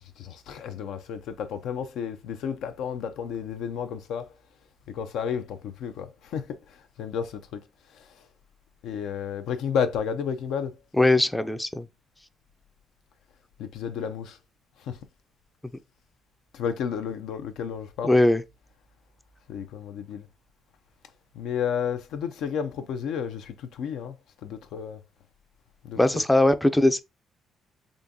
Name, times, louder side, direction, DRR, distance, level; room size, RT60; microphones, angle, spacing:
voice 1, 0.2-4.3 4.9-6.6 7.0-7.6 8.8-10.8 13.6-14.4 14.8-15.0 16.5-18.2 19.5-20.3 21.3-24.1 24.4-25.0 25.8-26.2, left 7 dB, 85° left, 0.5 m, -32 dB
voice 2, 10.9-11.9 18.0-18.4 26.0-27.0, left 1 dB, 10° left, 0.3 m, -20 dB
3.7 x 2.6 x 2.6 m
cardioid pair, 90°, 0 cm